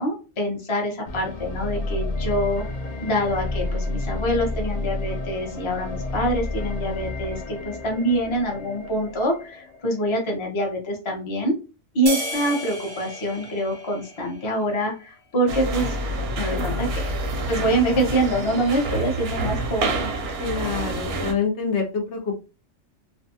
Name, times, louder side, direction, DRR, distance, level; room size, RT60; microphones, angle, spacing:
voice 1, 0.0-2.6 3.0-11.5 11.9-16.0 16.4-17.1 17.5-20.1, right 1 dB, 30° left, 0 dB, 0.6 m, -25 dB
sound 1, 1.1-10.1, left 2 dB, 85° left, 0.3 m, -31 dB
sound 2, 12.1-14.7, equal, 25° right, 0.6 m, -33 dB
sound 3, 15.5-21.3, right 2 dB, 65° right, 0.7 m, -27 dB
voice 2, 20.4-22.4, left 5 dB, 70° left, 2 dB, 0.8 m, -26 dB
2.6 x 2.2 x 2.6 m, 0.33 s
omnidirectional pair, 1.3 m